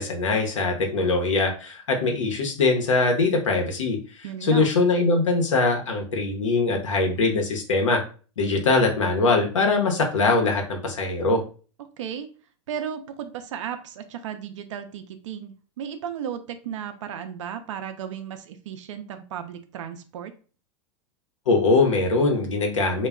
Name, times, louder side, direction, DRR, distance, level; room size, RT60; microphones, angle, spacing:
voice 1, 0.0-4.0 4.4-8.0 8.4-11.4 21.5-23.1, left 3 dB, 90° left, 2 dB, 0.8 m, -22 dB
voice 2, 4.2-4.8 12.0-12.3 12.7-20.3, right 8 dB, 80° right, 8 dB, 0.5 m, -35 dB
2.2 x 2.2 x 3.5 m, 0.38 s
hypercardioid pair, 110°, 16 cm